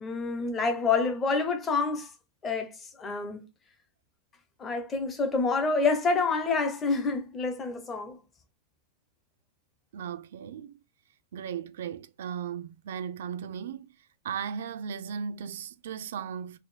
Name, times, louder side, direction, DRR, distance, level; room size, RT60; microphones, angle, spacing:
voice 1, 0.0-2.1 2.4-2.7 3.0-3.4 4.6-8.2, left 4 dB, 15° left, 0.5 m, -27 dB
voice 2, 9.9-10.7 11.3-13.9 14.2-16.6, right 7 dB, 65° right, 0.4 m, -36 dB
3.9 x 2.2 x 3.1 m
supercardioid pair, 175°, 0 cm